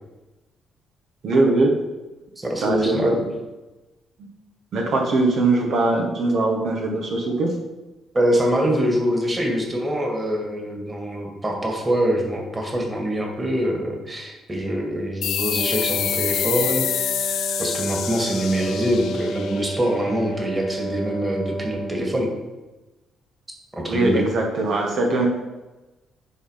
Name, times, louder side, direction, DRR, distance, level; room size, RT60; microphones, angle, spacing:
voice 1, 1.2-1.7 2.6-3.3 4.7-7.5 23.9-25.3, right 2 dB, 65° right, 0 dB, 1.4 m, -21 dB
voice 2, 2.4-3.2 8.1-16.9 17.6-22.3 23.7-24.2, equal, 20° right, 1 dB, 2.1 m, -24 dB
sound 1, 15.2-20.4, left 10 dB, 75° left, 0.6 m, -27 dB
Wind instrument woodwind instrument, 15.5-22.3, right 2 dB, 85° right, 2.4 m, -32 dB
9.7 x 4.1 x 5.7 m, 1.1 s
cardioid pair, 90°, 0 cm